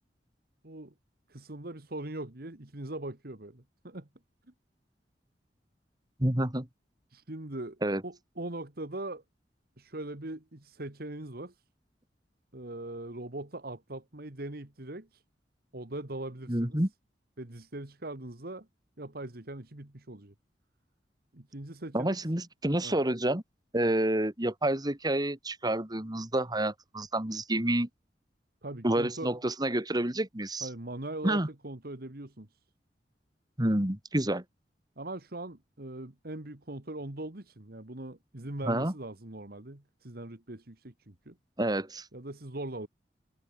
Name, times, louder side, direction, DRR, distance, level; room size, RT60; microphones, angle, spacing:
voice 1, 1.3-4.1 7.1-9.2 9.8-11.6 12.5-15.2 15.7-16.8 17.4-18.7 19.0-20.3 21.3-22.2 22.8-23.0 23.8-24.0 28.6-29.3 30.6-32.6 35.0-41.4 42.1-42.9, right 2 dB, 60° right, 2.1 m, -41 dB
voice 2, 6.2-6.7 7.8-8.0 16.5-16.9 21.9-23.4 23.7-27.9 28.8-30.7 31.2-31.5 33.6-34.4 38.6-38.9 41.6-42.1, right 1 dB, 25° right, 2.6 m, -28 dB
head